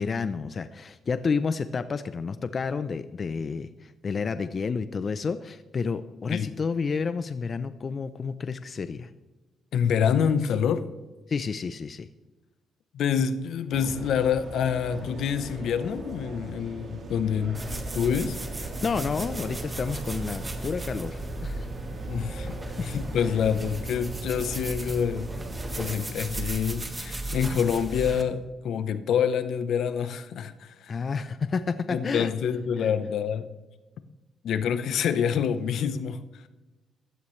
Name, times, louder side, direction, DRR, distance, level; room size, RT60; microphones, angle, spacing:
voice 1, 0.0-9.1 11.3-12.1 18.8-21.7 22.3-22.9 30.9-32.3 32.8-32.9, left 5 dB, 40° left, 12 dB, 0.5 m, -30 dB
voice 2, 9.7-10.9 12.9-17.6 17.9-18.4 22.0-25.3 25.7-31.0 31.9-33.5 34.4-36.2, left 7 dB, 75° left, 12 dB, 0.8 m, -27 dB
sound 1, 13.7-26.0, right 2 dB, 55° right, 2.7 m, -40 dB
sound 2, 17.5-28.2, right 2 dB, 20° right, 1.6 m, -35 dB
15.5 x 12.5 x 3.2 m, 1.1 s
cardioid pair, 95°, 0 cm